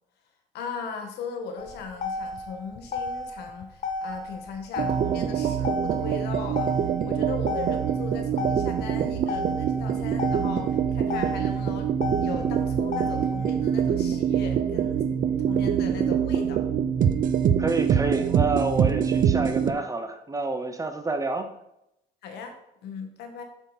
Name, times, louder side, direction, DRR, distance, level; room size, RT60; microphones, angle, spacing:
voice 1, 0.5-15.0 15.5-16.6 22.2-23.4, left 5 dB, 75° left, 5 dB, 1.5 m, -38 dB
Motor vehicle (road), 1.6-13.6, left 3 dB, 45° left, 1.0 m, -34 dB
sound 1, 4.8-19.7, right 8 dB, 55° right, 0.6 m, -25 dB
voice 2, 17.6-21.5, right 3 dB, 20° right, 7 dB, 0.8 m, -28 dB
7.7 x 5.8 x 4.1 m, 0.82 s
cardioid pair, 110°, 17 cm